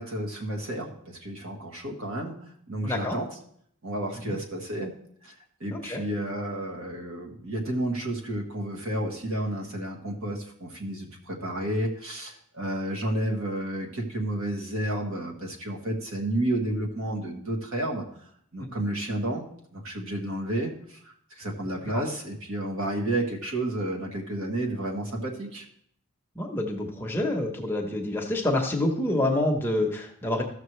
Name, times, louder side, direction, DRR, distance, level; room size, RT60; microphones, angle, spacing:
voice 1, 0.0-2.4 2.7-3.3 3.8-4.9 5.2-5.3 5.6-18.1 18.5-19.5 19.7-25.6, right 1 dB, 65° right, 0 dB, 1.7 m, -31 dB
voice 2, 2.8-3.2 4.3-4.4 5.7-6.0 21.9-22.0 26.4-30.4, left 1 dB, 10° left, 1 dB, 1.1 m, -27 dB
14.5 x 6.4 x 3.2 m, 0.66 s
head